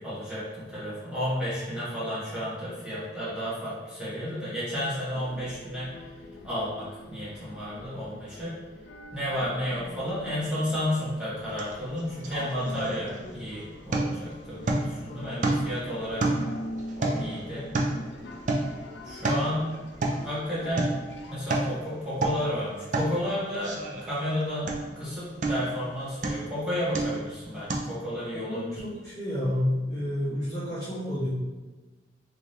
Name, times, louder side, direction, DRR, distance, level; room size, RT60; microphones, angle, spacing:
voice 1, 0.0-5.9 6.4-8.5 9.1-16.2 17.0-17.7 19.0-19.7 20.2-20.9 21.3-28.8, equal, 5° right, -11 dB, 1.3 m, -32 dB
sound 1, 5.1-21.3, left 1 dB, 65° left, 0.4 m, -43 dB
sound 2, 11.6-11.7 12.0-13.5 13.9-14.3 14.7-15.0 15.4-15.8 16.2-18.1 18.5-18.8 19.1-19.5 20.0-20.3 20.8-21.0 21.3-21.8 22.1-22.5 22.9-23.2 23.6-24.3 24.7-25.0 25.4-25.8 26.2-26.5 26.9-27.3 27.7-27.8, right 2 dB, 40° right, 0.4 m, -29 dB
voice 2, 28.3-31.3, left 1 dB, 20° left, -12 dB, 0.9 m, -30 dB
3.4 x 2.8 x 3.2 m, 1.2 s
head